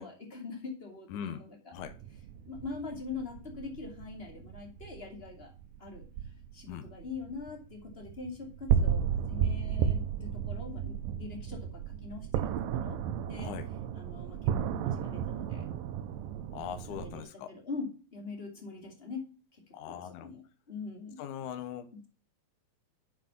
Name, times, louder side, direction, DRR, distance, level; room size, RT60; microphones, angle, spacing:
voice 1, 0.0-1.5 2.5-5.5 5.8-6.1 6.5-13.0 13.3-13.5 13.9-15.7 16.9-19.2 19.5-20.4 20.7-21.2, left 4 dB, 20° left, 1 dB, 1.9 m, -43 dB
voice 2, 1.1-1.4 1.7-1.9 6.7-6.9 13.4-13.7 16.5-17.5 19.7-20.3 21.2-21.9, left 9 dB, 70° left, 8 dB, 2.2 m, -40 dB
sound 1, 1.8-17.2, right 8 dB, 75° right, 2.4 m, -34 dB
7.5 x 6.5 x 5.9 m, 0.37 s
omnidirectional pair, 4.3 m